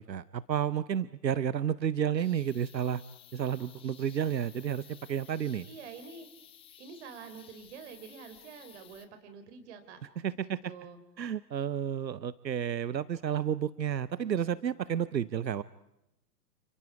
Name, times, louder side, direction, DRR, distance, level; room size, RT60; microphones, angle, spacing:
voice 1, 0.0-3.0 3.3-5.7 10.2-10.7 11.2-15.6, right 9 dB, 85° right, 19 dB, 0.8 m, -31 dB
sound 1, 2.2-9.1, left 10 dB, 10° left, 1.0 m, -55 dB
voice 2, 5.6-6.3 6.8-10.0 10.3-11.0, right 6 dB, 40° right, 9 dB, 3.9 m, -47 dB
29.5 x 27.5 x 4.8 m, 0.88 s
figure-of-eight pair, 125°, 50 cm